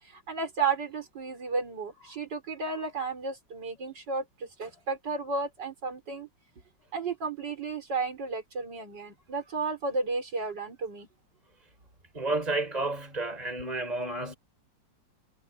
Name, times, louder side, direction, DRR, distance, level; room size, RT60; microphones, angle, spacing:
voice 1, 0.1-6.3 6.9-11.1, right 4 dB, 65° right, 5.4 m, -33 dB
voice 2, 12.1-14.3, right 2 dB, 20° right, 5.0 m, -31 dB
omnidirectional pair, 2.1 m